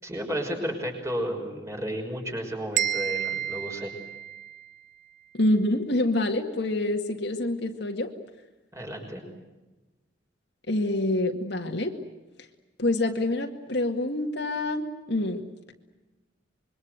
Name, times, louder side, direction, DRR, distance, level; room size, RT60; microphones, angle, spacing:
voice 1, 0.0-3.9 8.7-9.2, equal, 15° right, 3 dB, 5.8 m, -32 dB
sound 1, 2.8-4.8, right 10 dB, 45° right, 0.8 m, -30 dB
voice 2, 5.3-8.1 10.7-11.9 12.8-15.4, left 1 dB, 65° left, 3 dB, 2.1 m, -26 dB
26.0 x 23.5 x 8.0 m, 1.1 s
head